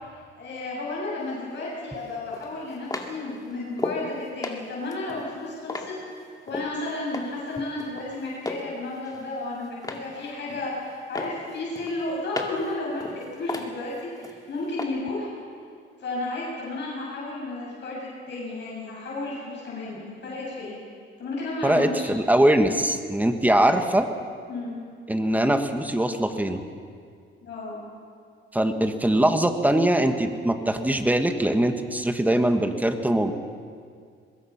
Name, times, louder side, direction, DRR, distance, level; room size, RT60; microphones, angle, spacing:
voice 1, 0.1-5.9 6.5-15.3 16.0-20.8 21.2-22.2 24.5-24.7 27.4-27.8, left 2 dB, 55° left, -5 dB, 7.8 m, -33 dB
sound 1, 1.3-1.4 2.3-4.1 4.4-6.7 7.1-7.5 7.8-8.7 9.0-10.1 10.5-10.9 11.2-12.7 13.0-14.4 14.8-14.9, left 2 dB, 15° left, 2.2 m, -34 dB
voice 2, 21.6-24.1 25.1-26.6 28.5-33.3, right 1 dB, 5° right, 7 dB, 1.6 m, -22 dB
23.5 x 21.0 x 5.9 m, 2.2 s
cardioid pair, 105°, 21 cm